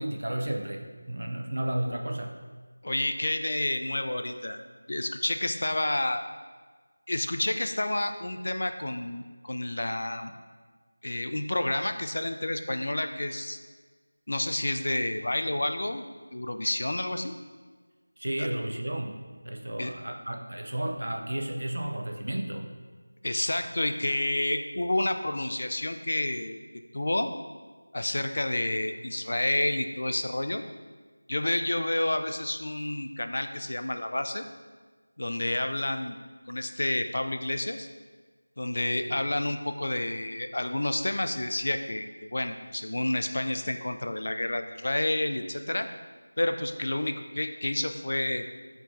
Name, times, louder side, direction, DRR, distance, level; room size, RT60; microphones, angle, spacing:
voice 1, 0.0-2.4 18.2-22.7 39.1-39.2, right 1 dB, 70° right, 3 dB, 0.7 m, -33 dB
voice 2, 2.8-4.6 4.9-6.2 7.1-10.3 11.0-13.6 14.3-16.1 16.3-17.4 18.4-18.5 19.8-19.9 23.2-26.6 26.9-27.3 27.9-30.6 31.3-34.4 35.2-36.2 36.5-37.9 38.6-45.9 46.4-48.5, left 1 dB, 50° left, 7 dB, 0.4 m, -29 dB
5.8 x 4.6 x 3.8 m, 1.4 s
figure-of-eight pair, 175°, 0 cm